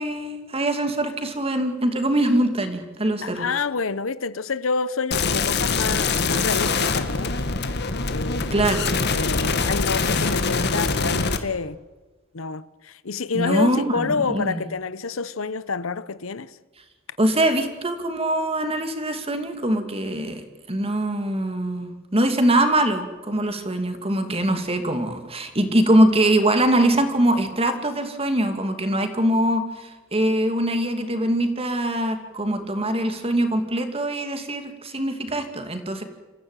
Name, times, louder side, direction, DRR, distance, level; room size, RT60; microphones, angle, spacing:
voice 1, 0.0-3.4 8.5-8.8 13.3-14.6 17.2-20.4 20.7-36.0, right 1 dB, 30° right, 2.7 m, -23 dB
voice 2, 3.2-7.3 8.1-8.5 9.1-11.8 12.3-16.6, left 4 dB, 80° left, 0.9 m, -28 dB
sound 1, 5.1-11.4, left 4 dB, 55° left, 1.9 m, -23 dB
27.5 x 15.0 x 9.1 m
head